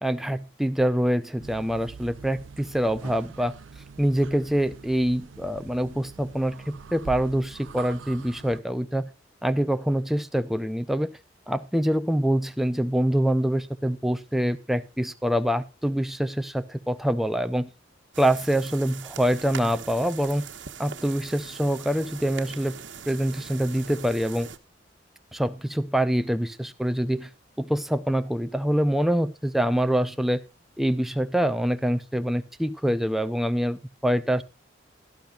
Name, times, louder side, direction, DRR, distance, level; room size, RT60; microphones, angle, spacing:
voice 1, 0.0-3.5 4.0-9.0 9.4-11.1 11.5-17.7 18.2-20.5 20.8-22.7 23.1-24.5 25.3-27.3 27.6-30.4 30.8-34.4, equal, ahead, 10 dB, 0.5 m, -25 dB
sound 1, 1.4-8.6, right 5 dB, 85° right, 0.5 m, -43 dB
sound 2, 18.1-24.6, right 6 dB, 70° right, 1.2 m, -41 dB
17.0 x 12.0 x 2.4 m, 0.26 s
head